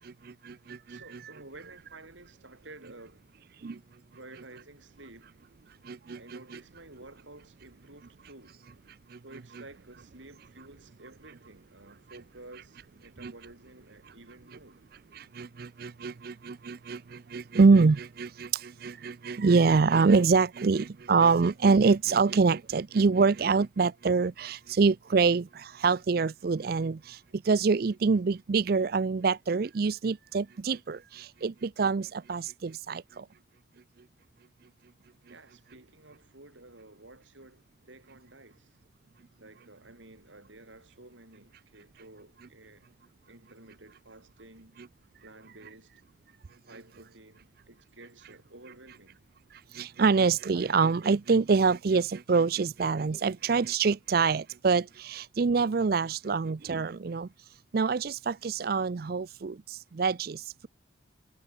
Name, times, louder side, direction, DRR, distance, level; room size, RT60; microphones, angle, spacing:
voice 1, 0.0-1.0 3.6-3.8 5.8-6.4 9.1-9.2 13.2-13.3 15.1-33.3 49.7-57.3 57.7-60.7, right 4 dB, 50° right, 0.4 m, -25 dB
voice 2, 0.9-3.2 4.1-5.3 6.1-8.6 9.2-14.8 33.7-33.8 35.3-38.7 39.4-42.9 43.3-44.8 45.2-45.9 46.7-49.2, right 2 dB, 75° right, 6.6 m, -52 dB
head